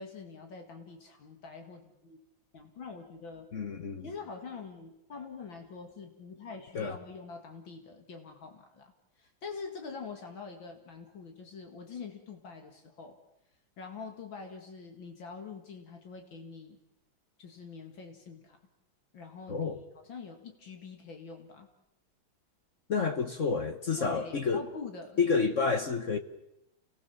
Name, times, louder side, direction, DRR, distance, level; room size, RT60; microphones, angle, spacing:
voice 1, 0.0-2.2 2.5-3.5 4.0-13.2 13.8-16.8 17.4-18.6 19.1-19.7 20.0-21.7 24.0-25.2, left 4 dB, 75° left, 2.8 m, -45 dB
voice 2, 3.5-4.1 6.7-7.0 19.5-19.8 22.9-24.7 25.2-26.2, left 5 dB, 45° left, 1.3 m, -29 dB
29.0 x 19.5 x 7.1 m
omnidirectional pair, 2.2 m